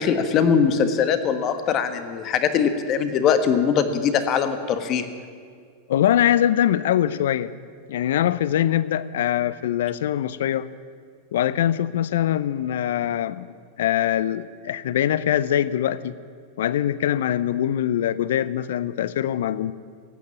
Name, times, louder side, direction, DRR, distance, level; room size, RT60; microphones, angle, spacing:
voice 1, 0.0-5.1, left 7 dB, 45° left, 10 dB, 1.4 m, -21 dB
voice 2, 5.9-7.5 7.9-10.7 11.3-13.5 13.8-16.1 16.6-19.7, left 11 dB, 75° left, 17 dB, 0.6 m, -23 dB
15.0 x 9.3 x 9.6 m, 2.1 s
hypercardioid pair, 100°, 0 cm